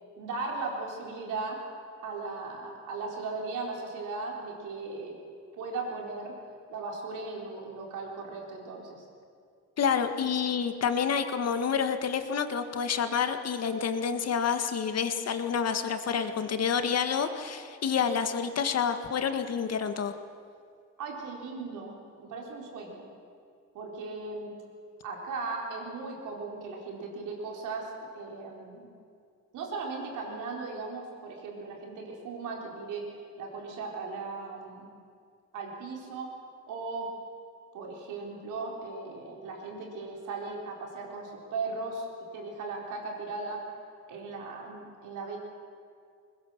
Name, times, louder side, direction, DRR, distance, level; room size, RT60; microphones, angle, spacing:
voice 1, 0.2-1.6 2.0-5.2 5.6-6.3 6.7-9.1 21.0-23.1 23.7-24.5 25.0-28.9 29.5-33.0 33.4-34.9 35.5-36.3 36.7-37.1 37.7-42.1 42.3-43.6 44.1-45.4, right 3 dB, 85° right, 0 dB, 4.5 m, -37 dB
voice 2, 9.8-20.1, left 7 dB, 55° left, 8 dB, 1.8 m, -28 dB
21.0 x 20.0 x 7.4 m, 2.3 s
cardioid pair, 90°, 30 cm